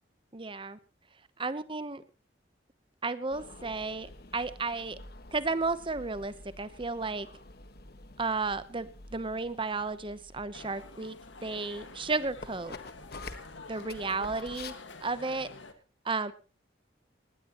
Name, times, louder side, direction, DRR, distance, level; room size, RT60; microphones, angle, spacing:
voice 1, 0.3-0.8 1.4-2.0 3.0-5.0 5.3-7.3 8.2-11.2 11.4-12.8 13.7-14.7 15.0-15.5 16.0-16.3, right 3 dB, 30° right, 14 dB, 0.9 m, -33 dB
sound 1, 3.3-14.7, left 3 dB, 55° left, 1.5 m, -49 dB
sound 2, 10.5-15.7, left 3 dB, 85° left, 1.9 m, -48 dB
20.0 x 17.0 x 3.1 m, 0.32 s
head